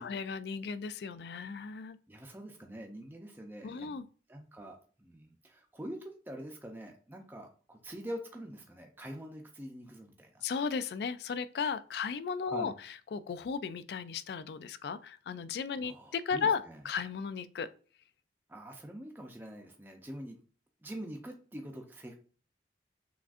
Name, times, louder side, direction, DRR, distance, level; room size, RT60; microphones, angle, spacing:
voice 1, 0.0-2.0 3.6-4.0 10.4-12.7 13.1-17.7, left 6 dB, 65° left, 0.3 m, -35 dB
voice 2, 2.1-4.0 4.3-10.4 12.5-12.7 15.8-16.8 18.5-20.4 20.8-22.1, equal, 10° right, 0.5 m, -45 dB
6.0 x 2.4 x 2.4 m
head